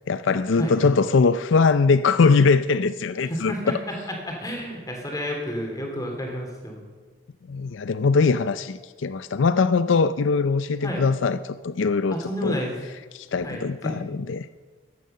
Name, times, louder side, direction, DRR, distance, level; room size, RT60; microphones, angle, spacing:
voice 1, 0.1-3.8 7.5-12.6 13.1-14.5, left 4 dB, 85° left, 13 dB, 0.5 m, -21 dB
voice 2, 0.6-0.9 3.3-3.9 4.3-6.8 10.8-11.0 12.1-12.8 13.4-13.9, equal, 20° left, 1 dB, 3.0 m, -30 dB
14.5 x 10.5 x 6.7 m, 1.4 s
head